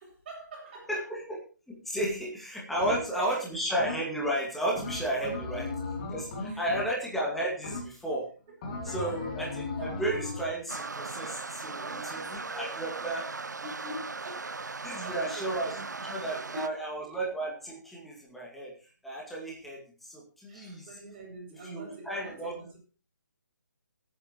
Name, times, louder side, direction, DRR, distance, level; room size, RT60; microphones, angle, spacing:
voice 1, 0.0-1.0 2.8-3.5 5.4-5.5 6.5-6.6 8.8-9.2 10.6-10.7 11.6-12.7 13.6-16.7 20.5-22.8, right 1 dB, 25° right, 6.6 m, -44 dB
voice 2, 0.9-1.4 1.7-5.7 6.1-8.3 8.8-13.3 14.8-15.7 16.1-20.9 21.5-22.5, right 1 dB, ahead, 2.2 m, -33 dB
sound 1, 2.8-3.3 3.8-4.3 4.7-7.2 7.6-8.2 8.6-10.5, left 3 dB, 25° left, 3.0 m, -37 dB
sound 2, 10.7-16.7, right 4 dB, 65° right, 0.5 m, -38 dB
23.5 x 9.0 x 3.0 m
figure-of-eight pair, 145°, 10 cm